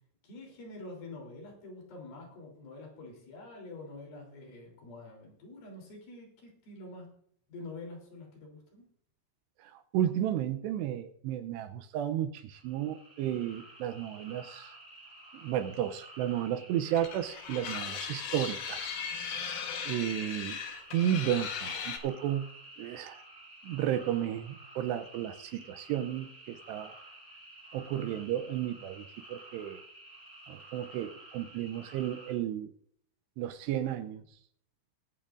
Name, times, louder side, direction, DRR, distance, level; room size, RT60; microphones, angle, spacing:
voice 1, 0.2-7.1 7.5-8.8, left 2 dB, 55° left, -1 dB, 4.9 m, -46 dB
voice 2, 9.6-14.7 15.4-19.0 19.9-20.6 20.9-22.5 22.8-23.2 23.6-27.0 27.7-29.0 29.3-29.8 30.5-32.7 33.4-34.2, right 11 dB, 80° right, 10 dB, 2.6 m, -33 dB
sound 1, 12.5-32.3, right 2 dB, 5° left, 4.8 m, -51 dB
sound 2, 17.0-22.0, left 6 dB, 70° left, 1.8 m, -38 dB
21.0 x 9.1 x 2.5 m, 0.65 s
omnidirectional pair, 5.2 m